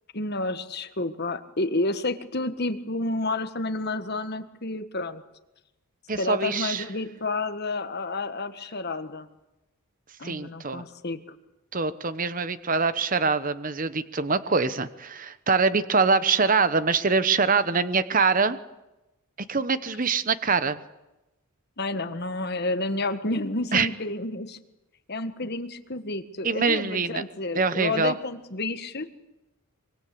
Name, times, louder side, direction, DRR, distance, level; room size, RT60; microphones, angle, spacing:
voice 1, 0.1-5.2 6.1-9.3 10.2-11.2 21.8-24.6 25.1-29.1, left 2 dB, 45° left, 8 dB, 1.6 m, -30 dB
voice 2, 6.1-6.8 10.2-10.8 11.7-18.6 19.5-20.8 23.7-23.9 26.4-27.2 27.5-28.1, right 4 dB, 35° right, 13 dB, 1.0 m, -24 dB
24.5 x 23.0 x 8.5 m, 0.98 s
head